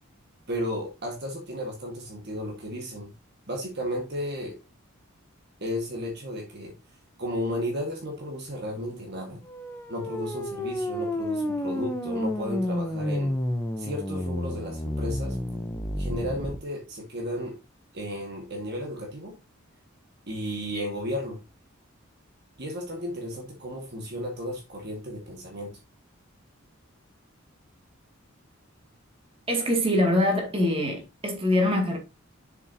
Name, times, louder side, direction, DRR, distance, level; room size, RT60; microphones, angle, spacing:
voice 1, 0.5-3.1 3.5-4.6 5.6-6.7 7.2-9.4 9.9-13.3 13.8-15.4 16.0-17.5 17.9-19.3 20.3-21.4 22.6-25.7, equal, 50° right, 1.7 m, -33 dB
sound 1, 9.5-16.6, left 1 dB, 10° left, 0.7 m, -30 dB
voice 2, 29.5-32.0, left 1 dB, 25° right, 2.2 m, -24 dB
7.1 x 6.8 x 2.8 m
head